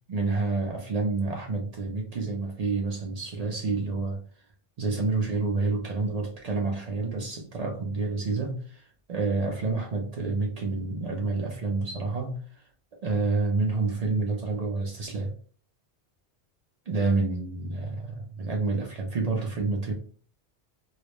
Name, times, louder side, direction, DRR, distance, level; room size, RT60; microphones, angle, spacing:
voice 1, 0.1-4.2 4.8-12.6 13.0-15.3 16.9-19.9, right 3 dB, 55° right, 0.4 m, -28 dB
2.3 x 2.0 x 2.9 m
omnidirectional pair, 1.1 m